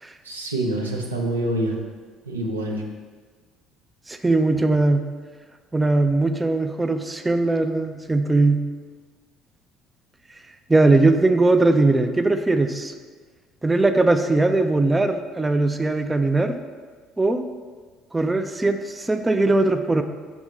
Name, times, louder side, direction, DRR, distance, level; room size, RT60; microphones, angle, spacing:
voice 1, 0.2-1.8 2.3-2.8, right 1 dB, 90° right, -2 dB, 0.9 m, -26 dB
voice 2, 4.1-5.0 5.7-8.6 10.7-12.9 13.6-16.6 17.2-17.4 18.1-20.0, right 2 dB, 15° right, 7 dB, 0.5 m, -20 dB
6.1 x 3.6 x 6.1 m, 1.5 s
figure-of-eight pair, 55°, 0 cm